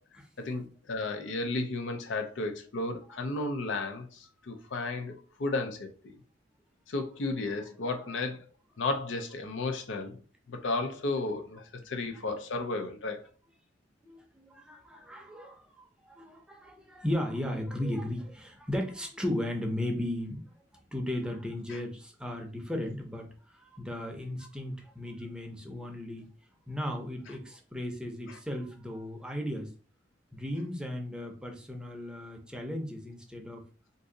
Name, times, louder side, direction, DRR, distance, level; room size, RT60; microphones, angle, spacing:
voice 1, 0.4-6.2 6.9-8.4 8.8-10.2 10.5-13.3 21.7-21.8, left 2 dB, 85° left, 0.6 m, -33 dB
voice 2, 14.0-20.4 20.9-26.3 26.7-29.7 30.3-33.6, left 1 dB, 5° right, 0.6 m, -36 dB
2.7 x 2.6 x 3.7 m
head